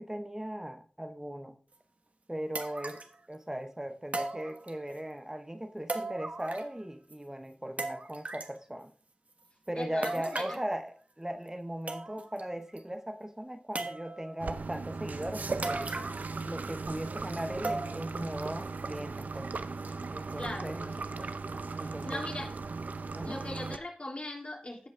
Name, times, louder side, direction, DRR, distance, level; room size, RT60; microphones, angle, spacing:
voice 1, 0.0-1.6 2.3-3.0 3.3-8.9 9.7-15.9 16.4-19.5 20.1-20.9 21.7-22.2 23.1-23.4, right 1 dB, 15° right, 8 dB, 0.8 m, -38 dB
sound 1, 1.7-1.8 2.5-3.2 4.1-5.0 5.9-6.8 7.1-7.2 7.8-8.6 10.0-10.7 11.5-11.6 11.9-12.4 12.8-12.9 13.7-14.3 15.6-16.4 16.7-16.8 17.6-18.2 18.6-18.7 19.3-19.4, right 2 dB, 60° right, 1.3 m, -37 dB
voice 2, 9.7-10.6 20.4-21.6 22.0-22.5 23.2-24.9, left 1 dB, 50° left, 0 dB, 3.2 m, -40 dB
sound 2, 14.4-23.8, right 4 dB, 80° right, 0.6 m, -37 dB
16.0 x 5.3 x 3.6 m, 0.41 s
cardioid pair, 40°, 3 cm